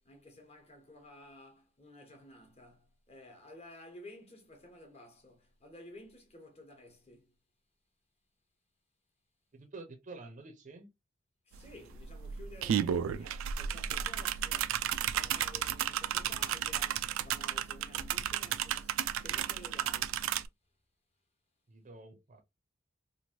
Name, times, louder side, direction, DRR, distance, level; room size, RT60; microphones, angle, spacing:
voice 1, 0.0-7.3 11.5-14.8 15.1-20.3, left 1 dB, 30° left, 1.0 m, -53 dB
voice 2, 9.5-10.9 21.7-22.4, right 3 dB, 40° right, 0.6 m, -49 dB
sound 1, 11.5-11.6 11.9-20.5, right 10 dB, 80° right, 0.3 m, -33 dB
3.0 x 2.5 x 2.8 m
head